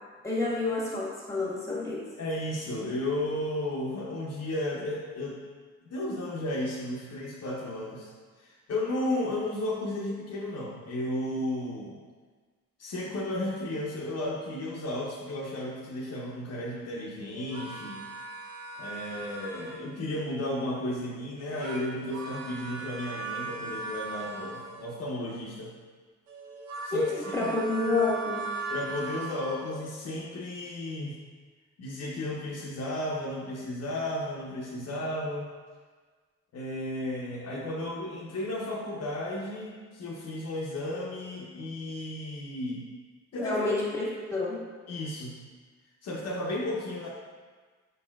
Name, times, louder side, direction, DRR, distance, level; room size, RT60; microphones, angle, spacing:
voice 1, 0.2-2.0 26.9-28.5 43.4-44.6, left 2 dB, 10° left, -5 dB, 1.5 m, -29 dB
voice 2, 2.2-5.4 5.9-8.1 8.4-12.0 12.8-18.1 18.8-25.7 26.8-27.5 28.7-31.2 31.8-35.4 36.5-42.8 43.3-43.6 44.9-45.4 46.0-47.1, left 1 dB, 55° left, -4 dB, 0.8 m, -34 dB
sound 1, 17.4-19.9 21.4-25.0 26.3-29.9, right 3 dB, 80° right, 0.8 m, -39 dB
4.9 x 4.3 x 2.4 m, 1.5 s
cardioid pair, 90°, 30 cm